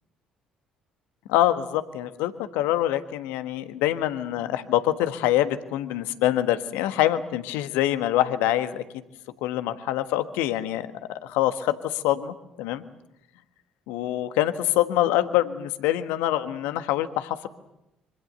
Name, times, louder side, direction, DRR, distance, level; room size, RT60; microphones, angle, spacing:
voice 1, 1.3-9.0 9.4-12.8 13.9-17.5, left 13 dB, 65° left, 10 dB, 1.4 m, -25 dB
25.5 x 25.0 x 6.8 m, 0.88 s
figure-of-eight pair, 50°, 3 cm